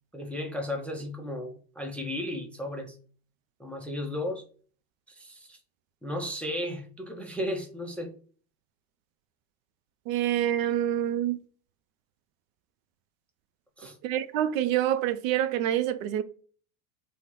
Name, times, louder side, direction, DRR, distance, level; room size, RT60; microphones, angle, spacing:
voice 1, 0.1-3.0 3.6-4.5 5.1-5.6 6.0-8.1 13.8-14.0, left 1 dB, 5° left, 0.3 m, -34 dB
voice 2, 10.1-11.4 14.0-16.2, right 11 dB, 70° right, 0.5 m, -26 dB
2.8 x 2.1 x 3.6 m
hypercardioid pair, 90°, 41 cm